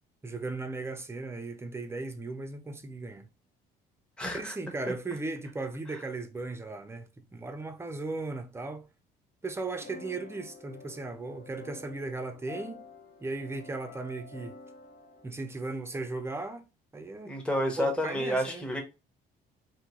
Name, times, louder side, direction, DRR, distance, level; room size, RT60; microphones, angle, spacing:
voice 1, 0.2-3.3 4.3-8.9 9.4-12.8 13.2-14.6 15.2-16.6 16.9-17.4 17.8-18.7, right 3 dB, 15° right, 0.6 m, -37 dB
voice 2, 4.2-4.5 17.3-18.8, equal, 5° left, 1.0 m, -30 dB
sound 1, 9.8-15.3, left 3 dB, 55° left, 0.9 m, -48 dB
3.7 x 2.7 x 3.0 m
cardioid pair, 110°, 17 cm